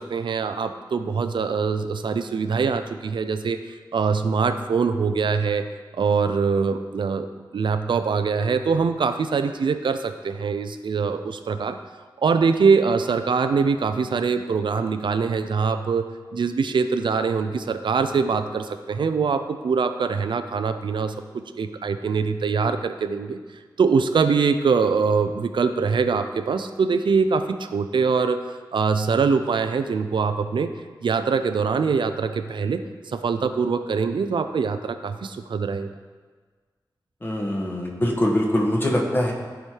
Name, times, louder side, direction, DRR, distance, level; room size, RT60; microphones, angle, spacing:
voice 1, 0.0-5.6 5.9-7.3 7.5-11.8 12.2-16.1 16.3-23.4 23.8-30.7 31.0-35.9, right 5 dB, 80° right, 8 dB, 0.6 m, -23 dB
voice 2, 37.2-39.3, left 1 dB, 25° left, -1 dB, 1.6 m, -23 dB
14.0 x 5.0 x 4.6 m, 1.5 s
wide cardioid pair, 115°, 8 cm